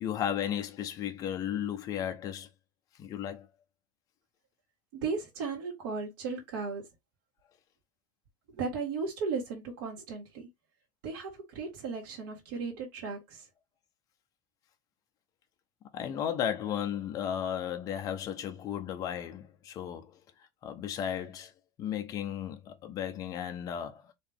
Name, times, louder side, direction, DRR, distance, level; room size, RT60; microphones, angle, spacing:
voice 1, 0.0-2.5 3.0-3.5 15.9-20.2 20.6-21.5 21.8-24.1, left 9 dB, 30° left, 0.7 m, -34 dB
voice 2, 4.9-6.9 8.5-10.5 11.0-13.5, right 4 dB, 70° right, 1.9 m, -36 dB
4.2 x 2.8 x 3.5 m
cardioid pair, 175°, 12 cm